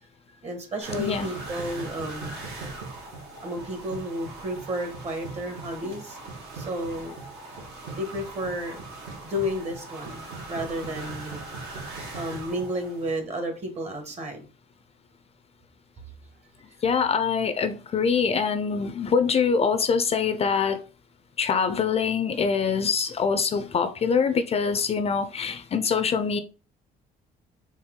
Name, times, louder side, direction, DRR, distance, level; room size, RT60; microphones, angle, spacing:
voice 1, 0.4-2.3 3.4-6.2 6.5-7.1 8.0-8.8 9.2-11.4 12.1-14.5, equal, 40° right, 1.4 m, -32 dB
sound 1, 0.8-13.2, right 3 dB, 75° right, 2.0 m, -39 dB
voice 2, 1.0-1.3 16.8-20.8 21.4-26.4, left 6 dB, 35° left, 0.5 m, -24 dB
4.3 x 3.0 x 3.7 m
cardioid pair, 110°, 17 cm